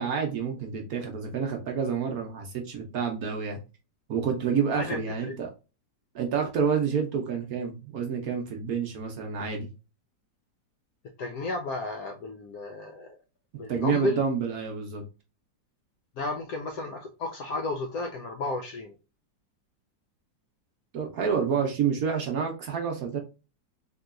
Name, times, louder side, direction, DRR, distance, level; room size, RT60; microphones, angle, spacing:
voice 1, 0.0-3.6 4.1-5.5 6.1-9.7 13.5-15.0 20.9-23.2, right 6 dB, 65° right, 3 dB, 1.0 m, -28 dB
voice 2, 4.7-5.3 11.2-13.2 13.6-14.2 16.2-19.0, left 2 dB, 75° left, 3 dB, 0.8 m, -33 dB
3.7 x 2.8 x 2.4 m, 0.31 s
omnidirectional pair, 2.0 m